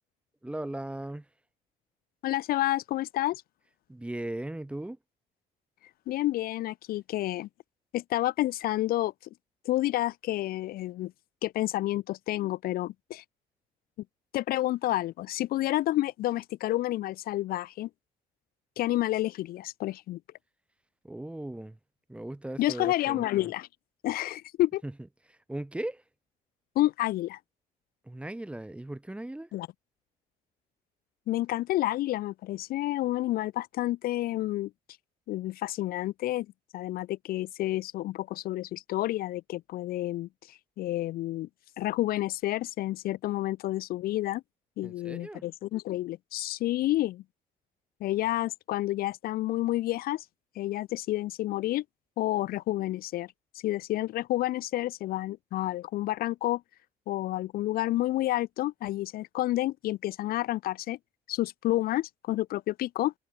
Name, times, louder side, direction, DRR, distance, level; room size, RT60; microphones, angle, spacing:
voice 1, 0.4-1.2 3.9-5.0 21.0-21.8 22.1-23.5 24.8-24.9 25.5-26.0 28.1-29.5 44.8-45.4, right 1 dB, 5° right, 0.8 m, -37 dB
voice 2, 2.2-3.4 6.1-7.5 7.9-9.1 9.6-11.1 11.4-13.2 14.3-17.9 18.8-20.2 22.6-23.7 24.0-24.8 26.8-27.4 29.5-29.7 31.3-34.7 35.3-36.5 36.7-41.5 41.8-44.4 44.8-47.2 48.0-50.3 50.6-51.8 52.2-56.6 57.1-61.0 61.3-63.1, left 15 dB, 60° left, 0.4 m, -29 dB
cardioid pair, 110°, 17 cm